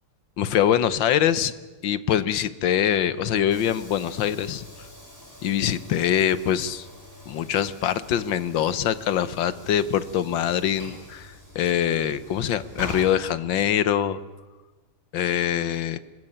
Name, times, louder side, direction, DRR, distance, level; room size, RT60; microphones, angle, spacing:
voice 1, 0.4-1.5 1.8-4.7 5.4-6.9 7.3-14.2 15.1-16.0, left 10 dB, 65° left, 14 dB, 1.6 m, -24 dB
Train / Sliding door, 2.6-14.0, left 1 dB, 10° left, 7.1 m, -44 dB
25.5 x 21.5 x 8.8 m, 1.2 s
omnidirectional pair, 2.4 m